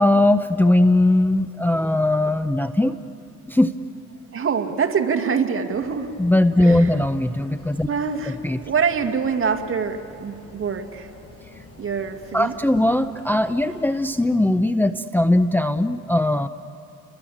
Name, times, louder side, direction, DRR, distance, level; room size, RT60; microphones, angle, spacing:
voice 1, 0.0-3.0 3.5-3.7 6.2-7.9 8.4-8.6 12.3-16.5, left 1 dB, 5° left, 9 dB, 0.7 m, -19 dB
voice 2, 4.3-6.1 6.6-7.0 7.9-11.1 11.8-12.6, right 6 dB, 45° right, 5 dB, 2.3 m, -25 dB
sound 1, 5.7-14.1, left 3 dB, 50° left, 6.9 m, -47 dB
30.0 x 22.0 x 8.7 m, 2.5 s
cardioid pair, 90°, 30 cm